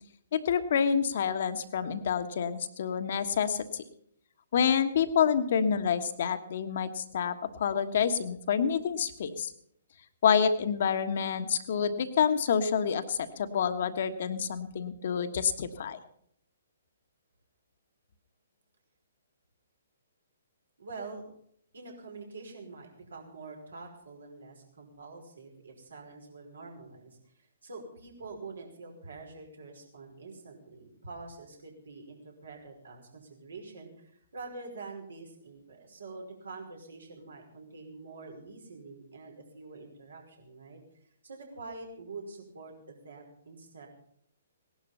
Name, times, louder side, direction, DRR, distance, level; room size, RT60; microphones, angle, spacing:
voice 1, 0.3-3.8 4.5-9.5 10.2-16.0, left 7 dB, 55° left, 9 dB, 1.4 m, -28 dB
voice 2, 20.8-21.2 21.7-40.8 41.2-43.9, right 3 dB, 70° right, 1 dB, 5.2 m, -46 dB
18.0 x 11.5 x 5.6 m, 0.70 s
figure-of-eight pair, 130°, 0 cm